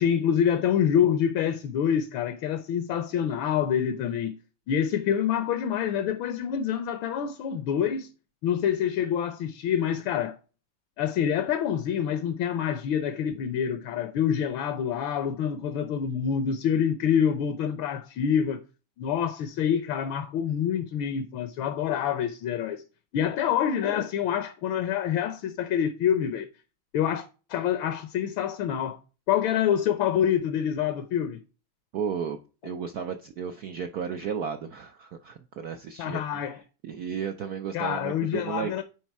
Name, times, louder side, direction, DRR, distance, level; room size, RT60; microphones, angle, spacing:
voice 1, 0.0-4.4 4.7-8.1 8.4-10.4 11.0-18.6 19.0-22.8 23.1-26.5 26.9-29.0 29.3-31.4 36.0-36.6 37.7-38.8, left 8 dB, 70° left, 1.5 m, -26 dB
voice 2, 31.9-32.4 32.6-38.8, right 7 dB, 70° right, 0.9 m, -34 dB
9.6 x 4.1 x 4.6 m
omnidirectional pair, 2.4 m